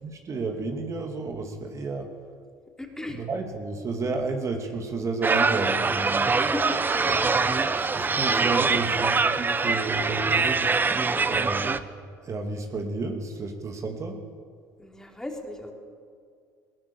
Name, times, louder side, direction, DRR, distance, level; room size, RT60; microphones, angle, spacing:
voice 1, 0.0-2.1 3.1-6.3 7.2-7.4 7.7-10.5 11.2-11.8 12.2-14.2, right 3 dB, 40° right, 4 dB, 2.6 m, -31 dB
voice 2, 2.8-3.2 6.4-7.2 11.0-11.4 14.8-15.7, left 1 dB, 10° left, 2 dB, 3.6 m, -37 dB
sound 1, 5.2-11.8, right 4 dB, 25° right, 1.0 m, -24 dB
20.5 x 18.0 x 7.1 m, 2.2 s
supercardioid pair, 75°, 8 cm